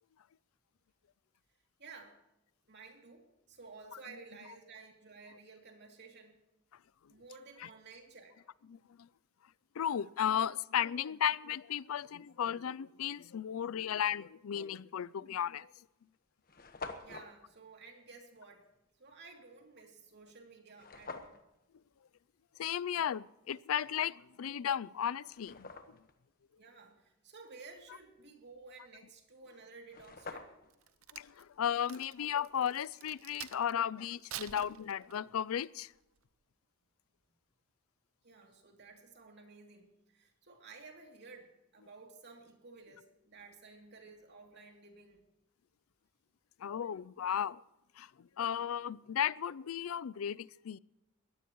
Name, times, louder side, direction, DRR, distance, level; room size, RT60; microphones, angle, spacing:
voice 1, 1.8-2.2 2.7-6.4 7.1-8.4 17.0-18.7 19.0-21.4 26.6-30.5 38.2-45.2, right 4 dB, 55° right, 2.8 m, -54 dB
voice 2, 8.7-9.1 9.8-15.7 22.6-25.7 31.1-35.9 46.6-47.6 48.0-50.8, left 9 dB, 90° left, 0.4 m, -35 dB
sound 1, 15.0-15.1 15.9-16.0 16.1-16.2 16.4-17.3 20.8-21.4 24.3-24.4 25.0-26.1 29.5-29.6 29.8-30.8, left 4 dB, 45° left, 1.3 m, -47 dB
Crack, 30.7-33.8 34.2-35.4 35.9-36.2, right 11 dB, 90° right, 0.7 m, -48 dB
22.5 x 17.0 x 3.1 m
head